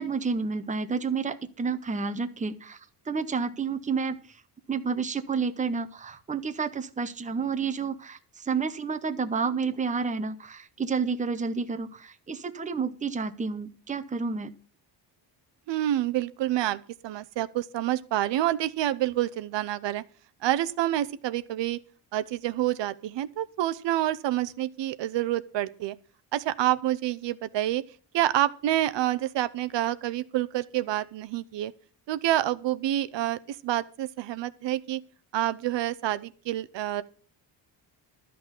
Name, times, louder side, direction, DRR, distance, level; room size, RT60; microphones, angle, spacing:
voice 1, 0.0-2.8 3.1-4.4 4.7-14.5, right 5 dB, 15° right, 0.8 m, -30 dB
voice 2, 15.7-20.0 20.4-21.8 22.1-26.0 26.3-27.8 28.1-31.7 32.1-35.0 35.3-37.0, right 13 dB, 70° right, 0.8 m, -28 dB
12.5 x 6.0 x 8.0 m
cardioid pair, 150°, 45 cm